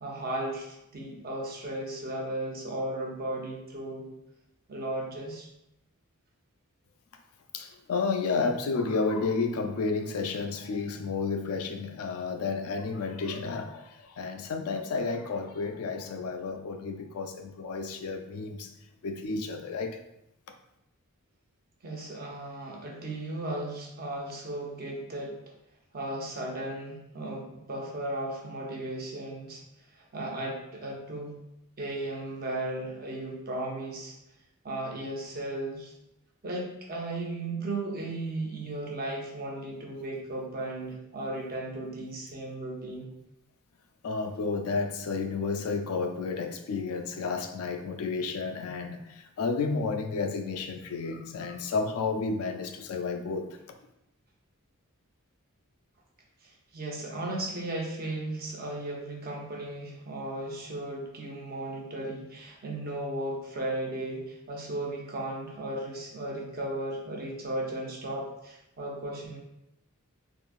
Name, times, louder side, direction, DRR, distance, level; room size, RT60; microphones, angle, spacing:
voice 1, 0.0-4.1 4.7-5.5 21.8-25.4 25.9-29.6 29.9-31.4 31.8-34.1 34.6-35.9 36.4-43.1 56.4-69.4, right 1 dB, 45° right, -1 dB, 0.7 m, -35 dB
voice 2, 7.5-18.7 19.0-20.0 44.0-53.5, left 4 dB, 75° left, 6 dB, 0.4 m, -31 dB
3.6 x 2.6 x 2.4 m, 0.86 s
head